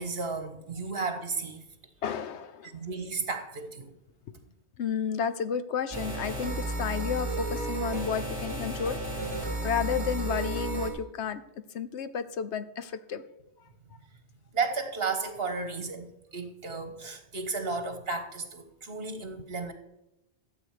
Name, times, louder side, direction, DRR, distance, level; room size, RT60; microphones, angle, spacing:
voice 1, 0.0-1.6 2.6-4.0 14.5-19.7, right 4 dB, 60° right, 8 dB, 1.7 m, -33 dB
voice 2, 2.0-2.7 4.8-9.0 9.6-11.4 11.7-13.2, left 7 dB, 80° left, 13 dB, 1.1 m, -32 dB
sound 1, 5.9-10.9, right 2 dB, 30° right, 3.1 m, -33 dB
12.5 x 7.7 x 5.0 m, 0.89 s
omnidirectional pair, 1.1 m